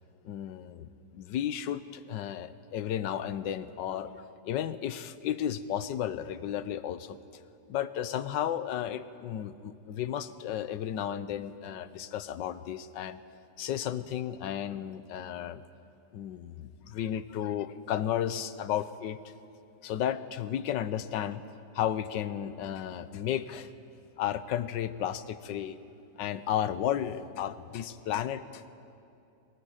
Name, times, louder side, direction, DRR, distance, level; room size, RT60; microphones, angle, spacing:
voice 1, 0.2-7.2 7.7-13.2 13.6-15.6 16.1-19.2 19.8-21.4 21.7-23.7 24.2-25.8 26.2-28.7, left 10 dB, 85° left, 14 dB, 1.5 m, -33 dB
22.5 x 18.5 x 9.0 m, 2.7 s
omnidirectional pair, 1.9 m